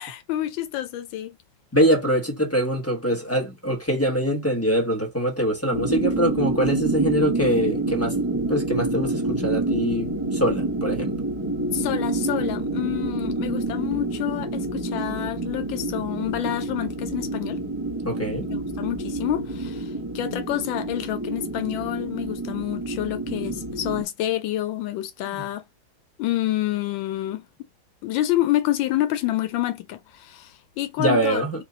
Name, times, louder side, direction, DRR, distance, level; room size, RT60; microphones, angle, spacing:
voice 1, 0.0-1.4 11.7-17.6 18.5-25.6 26.2-27.5 28.0-31.4, left 14 dB, 85° left, 1.4 m, -28 dB
voice 2, 1.7-11.1 18.0-18.5 25.4-25.5 31.0-31.6, right 1 dB, 10° left, 0.8 m, -23 dB
sound 1, 5.7-24.0, right 2 dB, 20° right, 0.9 m, -28 dB
4.4 x 2.4 x 3.9 m
omnidirectional pair, 2.0 m